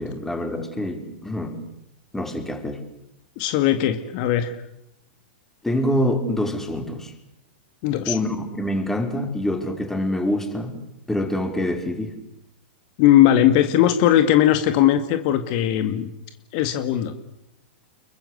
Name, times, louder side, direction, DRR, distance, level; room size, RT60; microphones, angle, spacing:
voice 1, 0.0-1.6 2.1-2.8 5.6-7.1 8.1-10.7 11.1-12.1, left 1 dB, 5° left, 5 dB, 5.3 m, -25 dB
voice 2, 3.4-4.6 7.8-8.2 13.0-16.1 16.5-17.1, left 11 dB, 50° left, 9 dB, 2.2 m, -19 dB
29.5 x 23.0 x 8.2 m, 0.81 s
hypercardioid pair, 105°, 6 cm